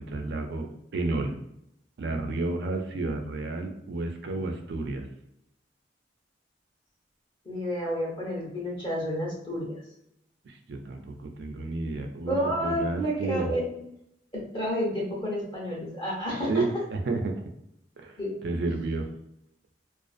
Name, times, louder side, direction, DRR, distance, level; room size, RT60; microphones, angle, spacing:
voice 1, 0.0-1.4 2.0-5.1 10.4-13.5 16.5-17.3 18.0-19.1, right 2 dB, 65° right, 5 dB, 0.4 m, -31 dB
voice 2, 7.5-9.7 12.2-13.6 14.3-16.8 18.2-18.4, equal, 30° left, -4 dB, 0.8 m, -30 dB
2.5 x 2.4 x 2.4 m, 0.79 s
head